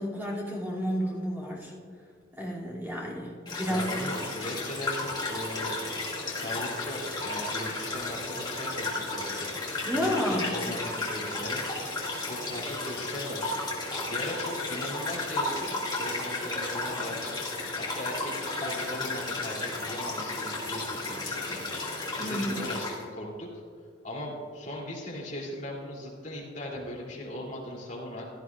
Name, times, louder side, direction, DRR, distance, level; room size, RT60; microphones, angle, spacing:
voice 1, 0.0-1.7 2.4-3.9 9.8-10.5 22.2-22.6, equal, 10° right, -7 dB, 2.6 m, -31 dB
sound 1, 3.5-23.0, left 2 dB, 20° left, 2.0 m, -33 dB
voice 2, 3.6-5.8 6.2-9.5 9.9-11.6 11.9-13.6 14.1-17.3 17.8-23.6 24.0-28.2, left 1 dB, 40° left, -4 dB, 2.9 m, -38 dB
16.5 x 12.5 x 2.4 m, 2.2 s
head